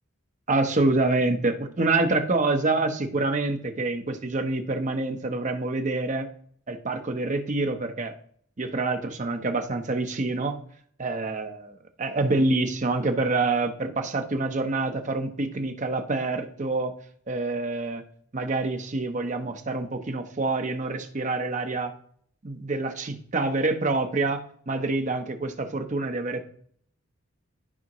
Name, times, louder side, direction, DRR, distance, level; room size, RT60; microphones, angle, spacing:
voice 1, 0.5-6.3 6.7-8.1 8.6-10.6 11.0-16.9 17.3-18.0 18.3-21.9 22.4-24.4 24.7-26.4, right 3 dB, 35° right, 6 dB, 0.7 m, -26 dB
12.0 x 4.9 x 3.0 m, 0.62 s
head